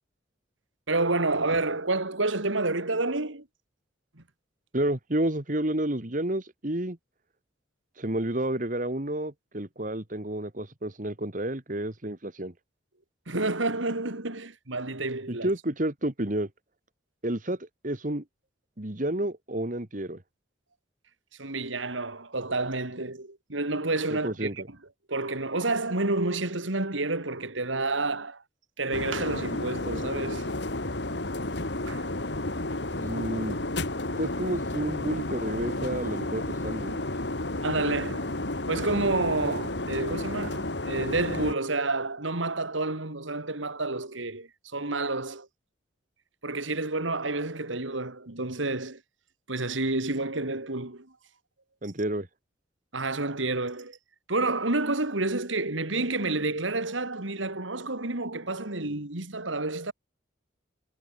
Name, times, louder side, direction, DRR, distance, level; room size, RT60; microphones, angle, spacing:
voice 1, 0.9-3.5 4.2-4.3 13.3-15.5 21.4-24.5 25.1-28.4 28.8-30.5 31.9-32.1 37.6-38.3 38.7-45.5 46.4-49.0 49.5-51.1 52.9-54.0 54.3-59.9, right 2 dB, 80° right, 2.9 m, -29 dB
voice 2, 4.7-7.0 8.0-12.5 15.3-16.5 17.2-18.2 18.8-20.2 24.1-24.7 33.0-33.6 34.2-37.0 51.8-52.3, right 1 dB, 45° right, 2.0 m, -30 dB
sound 1, 28.9-41.6, left 2 dB, 65° left, 2.3 m, -32 dB
head